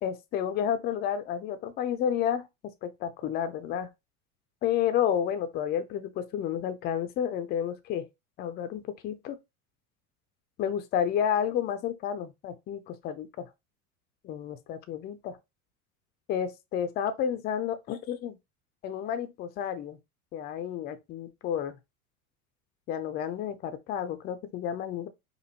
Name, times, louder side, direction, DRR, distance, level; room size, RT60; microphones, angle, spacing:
voice 1, 0.0-3.9 4.6-8.1 8.4-9.4 10.6-13.5 14.2-15.4 16.3-18.4 18.8-20.0 20.3-21.8 22.9-25.1, left 9 dB, 25° left, 0.4 m, -31 dB
4.2 x 2.7 x 2.8 m
figure-of-eight pair, 80°, 45 cm